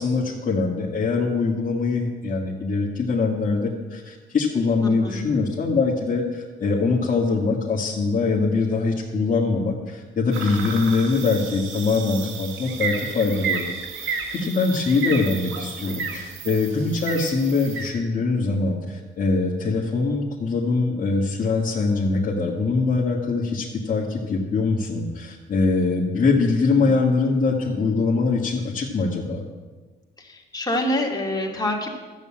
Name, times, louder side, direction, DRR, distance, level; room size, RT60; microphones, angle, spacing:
voice 1, 0.0-13.7 14.0-29.4, left 4 dB, 40° left, -4 dB, 1.9 m, -23 dB
voice 2, 4.8-5.2 30.2-31.9, left 1 dB, 20° left, -1 dB, 2.7 m, -26 dB
sound 1, 10.3-17.9, right 6 dB, 80° right, 1.9 m, -32 dB
12.0 x 7.4 x 8.7 m, 1.3 s
cardioid pair, 90°, 20 cm